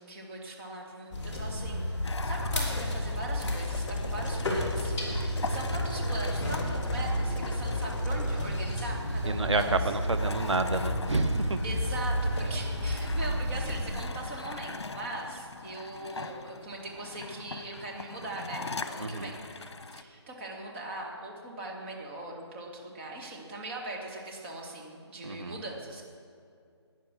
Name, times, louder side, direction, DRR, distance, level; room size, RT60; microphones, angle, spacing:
voice 1, 0.0-1.9 2.2-10.0 11.6-19.4 19.9-26.0, right 2 dB, 25° right, -1 dB, 2.2 m, -40 dB
sound 1, 1.1-14.0, equal, 10° left, 2.6 m, -31 dB
sound 2, 2.0-20.0, left 3 dB, 65° left, 1.1 m, -42 dB
sound 3, 3.7-8.5, left 2 dB, 45° left, 1.8 m, -45 dB
voice 2, 9.3-11.6 19.0-19.3 25.2-25.6, right 3 dB, 85° right, 8 dB, 1.1 m, -29 dB
16.0 x 10.0 x 6.2 m, 2.4 s
figure-of-eight pair, 160°, 15 cm